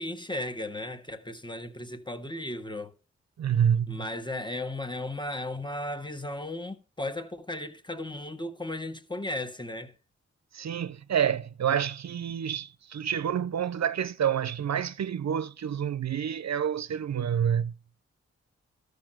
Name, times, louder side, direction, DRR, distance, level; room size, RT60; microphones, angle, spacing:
voice 1, 0.0-2.9 3.9-9.9, left 1 dB, 15° left, 1.5 m, -35 dB
voice 2, 3.4-4.0 10.5-17.7, right 8 dB, 65° right, 0.5 m, -28 dB
13.0 x 5.2 x 7.6 m
cardioid pair, 40°, 29 cm